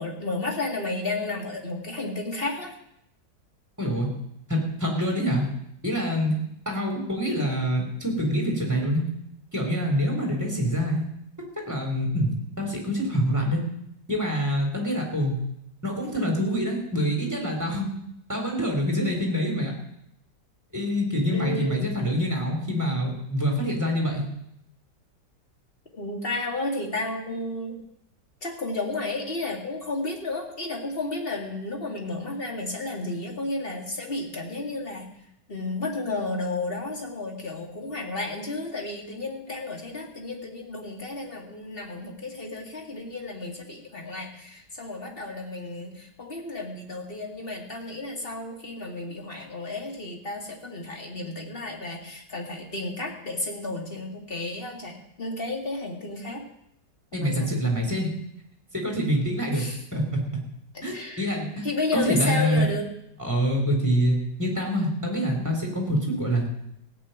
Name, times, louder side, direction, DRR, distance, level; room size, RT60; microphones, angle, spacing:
voice 1, 0.0-2.7 21.3-21.8 25.9-27.8 28.4-35.1 35.5-56.4 57.1-57.5 59.5-59.8 60.7-62.8, left 2 dB, 30° left, 1 dB, 2.2 m, -32 dB
voice 2, 3.8-4.1 4.5-5.4 5.8-6.3 6.7-9.0 9.5-11.0 11.7-13.6 14.1-15.4 15.8-17.9 18.3-19.7 20.7-24.2 57.1-58.1 58.7-59.6 59.9-60.2 60.8-61.7 61.9-62.7 63.2-66.5, equal, 10° right, 1 dB, 3.5 m, -25 dB
16.5 x 6.2 x 9.0 m, 0.76 s
omnidirectional pair, 1.9 m